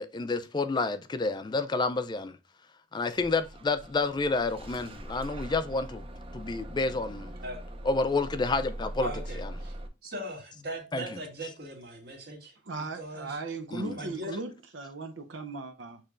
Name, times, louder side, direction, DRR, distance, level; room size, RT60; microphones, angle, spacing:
voice 1, 0.0-2.4 2.9-6.0 6.3-7.3 7.8-9.1 10.9-11.0 13.7-14.0, left 3 dB, 25° left, 0.4 m, -29 dB
Bus / Engine starting, 3.1-9.9, right 1 dB, 30° right, 0.6 m, -41 dB
voice 2, 9.0-9.8 10.0-13.4 13.9-14.4, right 1 dB, 55° right, 1.8 m, -40 dB
voice 3, 12.7-16.0, right 3 dB, 90° right, 0.6 m, -38 dB
6.5 x 3.0 x 2.4 m
head